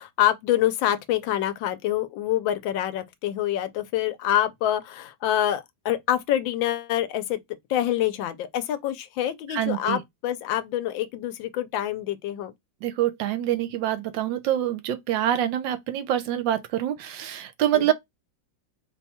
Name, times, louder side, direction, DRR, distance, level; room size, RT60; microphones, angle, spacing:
voice 1, 0.0-7.4 7.7-12.5 17.7-17.9, left 12 dB, 85° left, 1.4 m, -26 dB
voice 2, 9.5-10.0 12.8-17.9, right 12 dB, 80° right, 1.4 m, -26 dB
4.1 x 2.3 x 4.1 m
omnidirectional pair, 2.1 m